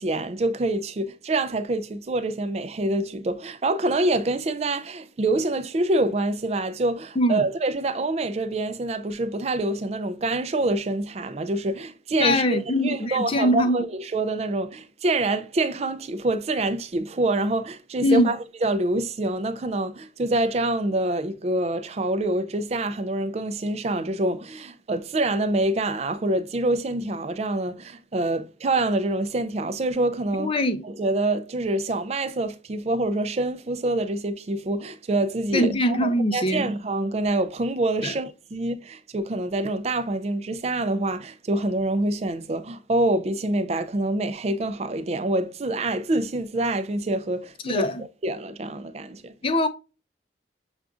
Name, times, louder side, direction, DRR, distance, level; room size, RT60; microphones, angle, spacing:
voice 1, 0.0-30.5 30.8-47.9 48.2-49.3, right 2 dB, 35° right, 0.4 m, -26 dB
voice 2, 12.2-13.8 18.0-18.3 30.4-30.8 35.5-36.7 38.0-38.1 47.6-47.9 49.4-49.7, left 1 dB, 30° left, 0.5 m, -22 dB
7.0 x 2.4 x 2.3 m
head